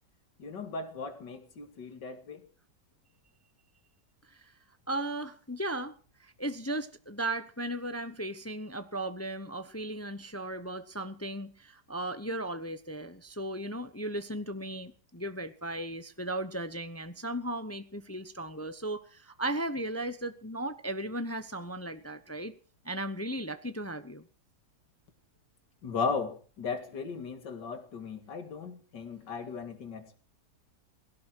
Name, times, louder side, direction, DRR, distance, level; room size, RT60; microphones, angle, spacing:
voice 1, 0.4-2.4 25.8-30.2, left 4 dB, 90° left, 8 dB, 2.7 m, -36 dB
voice 2, 4.9-22.6 22.8-24.2, right 1 dB, 15° left, 11 dB, 0.5 m, -36 dB
17.5 x 17.0 x 4.6 m, 0.40 s
omnidirectional pair, 1.8 m